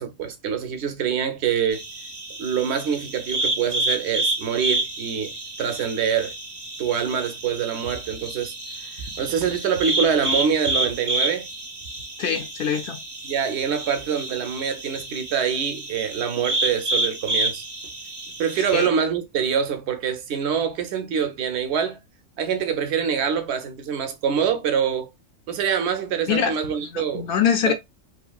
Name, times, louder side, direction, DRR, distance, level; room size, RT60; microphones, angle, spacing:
voice 1, 0.0-1.8 2.4-5.3 5.6-6.3 6.8-8.5 8.8-11.5 13.2-17.6 18.4-22.0 22.4-25.1 25.5-27.3 27.7-27.8, right 7 dB, 60° right, 0.9 m, -25 dB
sound 1, 1.7-18.9, right 1 dB, 25° right, 0.6 m, -29 dB
voice 2, 12.2-13.0 18.6-18.9 26.3-27.7, left 7 dB, 60° left, 0.6 m, -24 dB
3.0 x 2.7 x 2.3 m
omnidirectional pair, 1.4 m